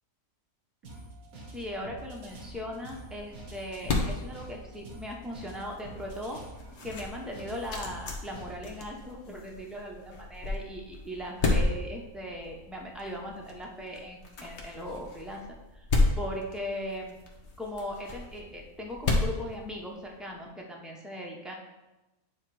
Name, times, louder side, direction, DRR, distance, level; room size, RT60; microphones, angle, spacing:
sound 1, 0.8-8.8, right 1 dB, 70° right, 1.6 m, -47 dB
voice 1, 1.5-6.4 6.8-15.4 15.7-15.9 16.2-17.2 17.6-21.5, equal, ahead, -1 dB, 0.3 m, -39 dB
sound 2, 1.6-20.3, left 2 dB, 50° left, 1.1 m, -34 dB
8.7 x 3.0 x 4.7 m, 1.0 s
omnidirectional pair, 1.6 m